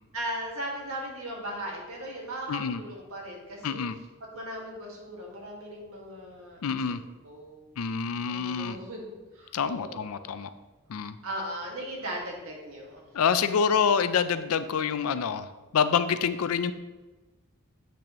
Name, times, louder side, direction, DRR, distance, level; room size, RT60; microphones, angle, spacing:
voice 1, 0.1-3.8 4.2-7.0 7.2-7.6 8.3-10.2 11.2-13.0, right 1 dB, 75° right, -1 dB, 1.8 m, -38 dB
voice 2, 2.5-2.8 3.6-4.0 6.6-7.0 7.8-8.8 9.5-10.5 10.9-11.2 13.1-15.5 15.7-16.7, left 6 dB, 80° left, 12 dB, 0.4 m, -26 dB
8.3 x 6.1 x 3.0 m, 1.2 s
head